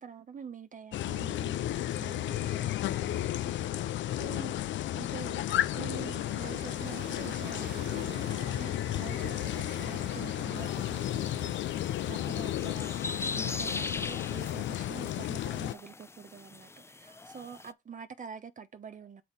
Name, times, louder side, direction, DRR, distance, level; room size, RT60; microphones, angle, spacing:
voice 1, 0.0-3.7 4.2-4.5 4.9-19.2, right 6 dB, 40° right, 0.9 m, -46 dB
sound 1, 0.9-15.7, left 13 dB, 70° left, 0.5 m, -33 dB
sound 2, 5.1-12.2, right 9 dB, 60° right, 1.0 m, -50 dB
sound 3, 10.6-17.7, left 3 dB, 15° left, 0.4 m, -41 dB
6.5 x 4.2 x 5.3 m
cardioid pair, 90°, 20 cm